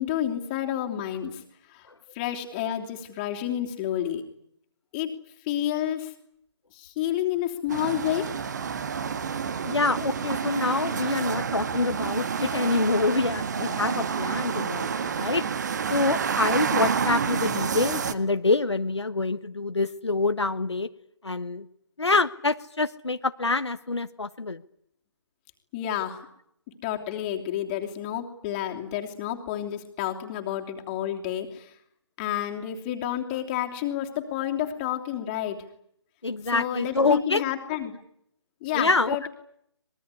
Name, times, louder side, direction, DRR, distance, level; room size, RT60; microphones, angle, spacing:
voice 1, 0.0-1.4 1.7-1.9 2.1-4.2 4.9-5.1 5.4-6.1 6.7-8.3 25.7-26.2 26.8-31.7 32.2-35.6 36.5-38.0 38.6-39.3, left 11 dB, 20° left, 3 dB, 3.0 m, -30 dB
sound 1, 7.7-18.1, right 6 dB, 40° right, 1.7 m, -29 dB
voice 2, 9.6-15.4 15.9-20.9 21.2-21.7 22.0-24.6 36.2-37.4 38.7-39.3, left 3 dB, 75° left, 9 dB, 1.3 m, -26 dB
24.5 x 22.0 x 9.8 m, 0.72 s
figure-of-eight pair, 145°, 15 cm